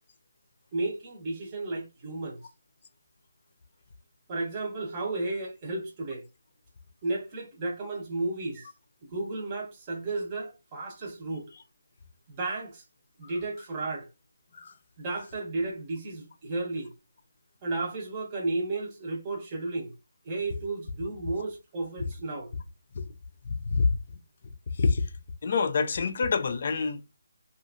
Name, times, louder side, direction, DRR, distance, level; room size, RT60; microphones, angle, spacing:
voice 1, 0.7-2.4 4.3-6.2 7.0-8.7 9.0-11.5 12.3-12.8 13.2-14.1 15.0-16.9 17.6-19.9 20.2-22.5, right 2 dB, 25° right, 0.8 m, -33 dB
voice 2, 23.7-24.0 24.8-25.0 25.4-27.2, left 4 dB, 45° left, 0.4 m, -26 dB
2.7 x 2.4 x 2.4 m
hypercardioid pair, 165°, 0 cm